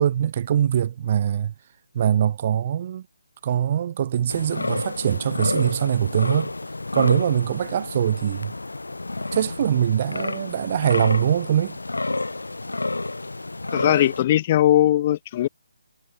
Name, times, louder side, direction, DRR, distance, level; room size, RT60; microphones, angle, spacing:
voice 1, 0.0-1.5 1.9-3.1 3.4-6.5 6.9-8.5 9.3-11.8, right 9 dB, 35° right, 0.7 m, -22 dB
sound 1, 4.3-14.2, left 2 dB, 70° left, 1.5 m, -30 dB
voice 2, 13.7-15.5, left 13 dB, 30° left, 0.3 m, -19 dB
figure-of-eight pair, 145°, 0 cm